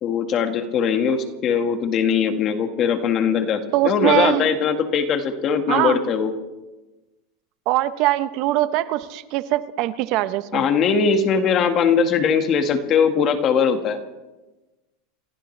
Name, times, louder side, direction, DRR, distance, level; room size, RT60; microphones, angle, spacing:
voice 1, 0.0-6.3 10.5-14.0, left 6 dB, 35° left, 7 dB, 1.7 m, -20 dB
voice 2, 3.7-4.5 5.7-6.0 7.7-10.6, right 15 dB, 50° right, 14 dB, 0.8 m, -22 dB
28.5 x 15.0 x 3.3 m, 1.1 s
supercardioid pair, 135°, 0 cm